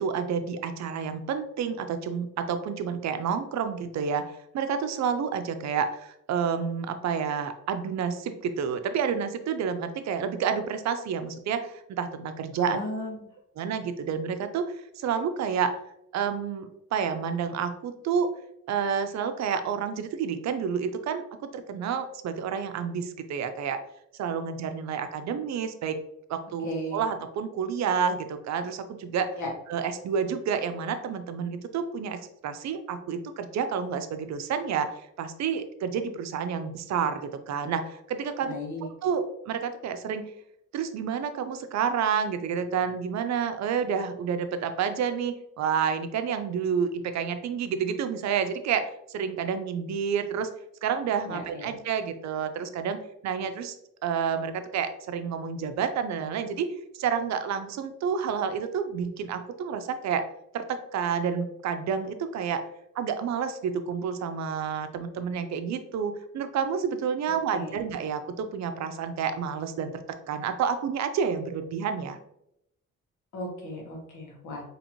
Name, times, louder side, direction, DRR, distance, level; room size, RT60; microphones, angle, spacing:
voice 1, 0.0-4.3 4.5-12.8 13.6-14.6 15.0-15.8 16.1-18.3 18.7-21.2 21.5-23.8 24.2-26.0 26.3-29.3 29.7-34.9 35.2-38.5 38.8-40.3 40.7-50.5 50.8-53.7 54.0-56.7 56.9-60.2 60.5-62.6 63.0-72.2, right 7 dB, 65° right, 9 dB, 0.6 m, -29 dB
voice 2, 12.6-13.1 26.6-27.0 29.4-29.5 38.4-38.9 51.3-51.7 67.5-67.7 73.3-74.6, left 1 dB, 75° left, -1 dB, 1.4 m, -35 dB
4.2 x 3.1 x 2.9 m, 0.78 s
cardioid pair, 90°, 30 cm